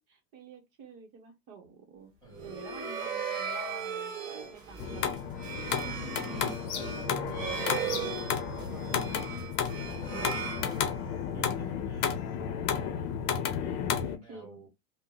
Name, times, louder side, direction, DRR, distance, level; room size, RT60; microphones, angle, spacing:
voice 1, 0.1-2.1 2.4-4.1 4.5-5.0 5.7-5.8 6.2-6.4 6.7-7.8 10.1-10.6 13.5-14.7, right 6 dB, 45° right, 0.9 m, -50 dB
voice 2, 2.2-2.6 5.6-7.7 8.2-10.8 11.3-14.7, right 4 dB, 10° left, 1.4 m, -50 dB
sound 1, 2.3-11.3, right 6 dB, 30° right, 1.3 m, -37 dB
sound 2, 4.5-10.8, right 3 dB, 10° right, 0.4 m, -53 dB
sound 3, 4.8-14.2, left 8 dB, 55° left, 0.7 m, -32 dB
2.7 x 2.1 x 3.7 m
supercardioid pair, 165°, 43 cm